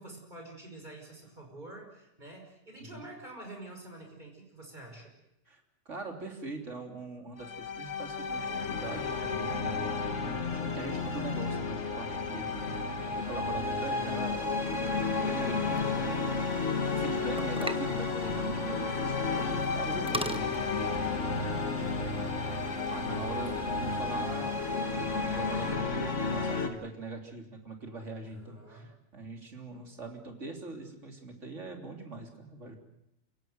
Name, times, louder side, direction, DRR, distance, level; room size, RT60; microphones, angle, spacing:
voice 1, 0.0-5.1 12.3-12.9 28.2-28.9, right 2 dB, 40° right, 2 dB, 5.7 m, -47 dB
voice 2, 5.5-12.8 13.1-14.9 15.2-16.3 16.9-21.2 21.7-22.4 22.9-32.8, right 3 dB, 85° right, 2 dB, 3.9 m, -42 dB
sound 1, 7.4-26.7, left 4 dB, 80° left, 2.1 m, -32 dB
sound 2, 10.8-25.8, right 2 dB, 65° right, 2.5 m, -48 dB
sound 3, 15.6-22.0, right 1 dB, 5° right, 0.9 m, -43 dB
28.5 x 17.5 x 8.0 m, 0.87 s
omnidirectional pair, 1.2 m